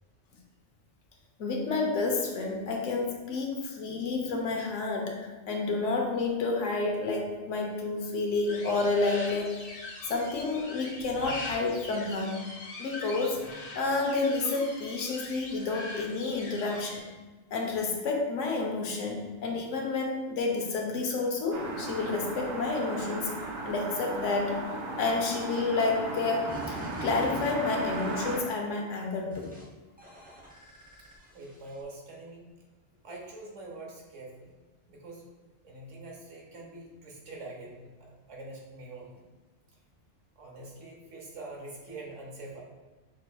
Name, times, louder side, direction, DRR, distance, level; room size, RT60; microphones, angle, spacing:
voice 1, 1.4-12.4 12.8-13.4 13.7-17.0 17.5-23.3 23.6-24.6 25.0-29.5, left 3 dB, 90° left, 1 dB, 1.1 m, -30 dB
sound 1, 8.5-17.0, left 2 dB, 50° left, 1.0 m, -42 dB
sound 2, 21.5-28.4, right 3 dB, 70° right, 1.0 m, -36 dB
sound 3, 26.5-28.7 29.3-29.6 30.0-31.8, equal, 10° right, 0.5 m, -46 dB
voice 2, 31.3-32.5 33.0-34.6 34.9-35.2 35.6-39.2 40.4-42.6, right 2 dB, 90° right, -1 dB, 1.3 m, -44 dB
6.1 x 2.9 x 2.3 m, 1.2 s
omnidirectional pair, 1.2 m